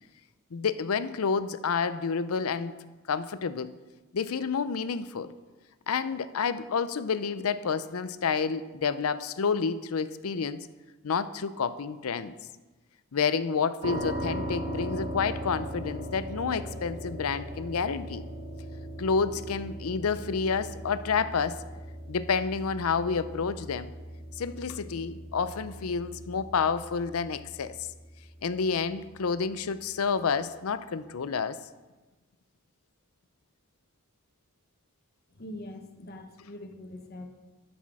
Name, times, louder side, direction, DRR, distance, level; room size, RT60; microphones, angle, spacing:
voice 1, 0.5-2.7 3.1-3.8 4.1-5.3 5.9-10.6 11.0-12.3 13.1-18.2 19.0-21.6 22.1-23.9 24.4-27.7 28.4-31.6, left 5 dB, 90° left, 13 dB, 0.5 m, -29 dB
sound 1, 13.8-28.7, equal, 30° right, 1.4 m, -39 dB
voice 2, 35.3-37.3, left 1 dB, 45° left, 4 dB, 1.1 m, -43 dB
11.5 x 6.1 x 4.8 m, 1.2 s
head